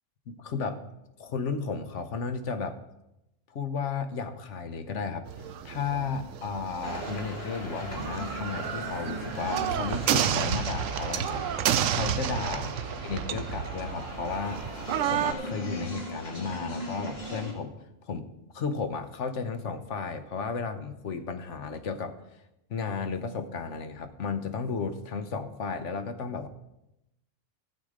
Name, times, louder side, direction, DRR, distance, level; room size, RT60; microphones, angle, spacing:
voice 1, 0.3-0.9 1.2-2.8 3.5-12.7 13.0-14.6 15.0-17.7 18.0-18.3 18.5-22.2 22.7-26.5, left 5 dB, 70° left, 9 dB, 1.2 m, -34 dB
sound 1, 5.3-15.3, right 9 dB, 90° right, 1.0 m, -31 dB
sound 2, 6.8-17.5, equal, 50° left, 2.4 m, -39 dB
13.0 x 8.1 x 5.0 m, 0.89 s
omnidirectional pair, 1.3 m